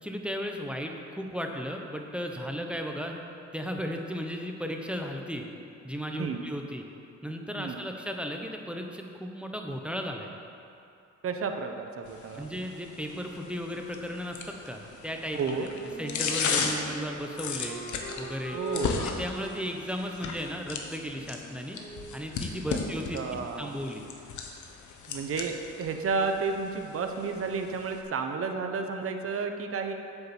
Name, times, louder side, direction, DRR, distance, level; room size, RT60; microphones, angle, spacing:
voice 1, 0.0-3.2 3.5-5.5 5.8-6.8 7.2-10.3 12.3-15.6 16.0-17.8 18.2-18.6 19.0-21.8 22.1-24.0, equal, 5° right, 2 dB, 1.0 m, -35 dB
voice 2, 11.2-12.5 15.3-15.7 18.5-18.9 22.7-22.8 23.1-23.7 25.1-29.9, right 5 dB, 50° right, 5 dB, 1.0 m, -32 dB
sound 1, 12.1-28.0, left 5 dB, 75° left, 1.2 m, -36 dB
Wind instrument woodwind instrument, 15.4-22.2, right 2 dB, 35° left, 2.4 m, -42 dB
8.6 x 6.9 x 7.2 m, 2.6 s
cardioid pair, 90°, 30 cm